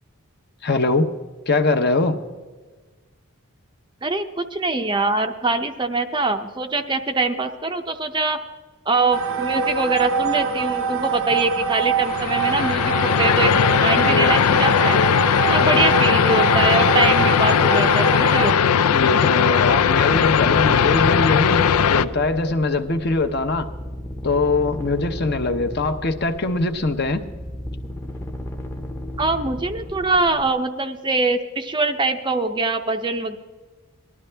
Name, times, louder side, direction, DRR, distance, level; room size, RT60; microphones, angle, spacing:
voice 1, 0.6-1.1 1.5-2.2 18.9-21.6 21.9-23.7 24.2-27.2, left 3 dB, 45° left, 7 dB, 0.8 m, -22 dB
voice 2, 4.0-8.4 8.9-15.0 15.5-18.6 29.2-33.4, right 3 dB, 20° right, 7 dB, 0.5 m, -23 dB
sound 1, 9.1-18.5, right 6 dB, 65° right, 0.8 m, -25 dB
sound 2, 12.0-22.0, left 7 dB, 85° left, 0.4 m, -18 dB
sound 3, 19.6-30.5, left 1 dB, 10° left, 0.7 m, -34 dB
19.5 x 12.0 x 3.4 m, 1.3 s
head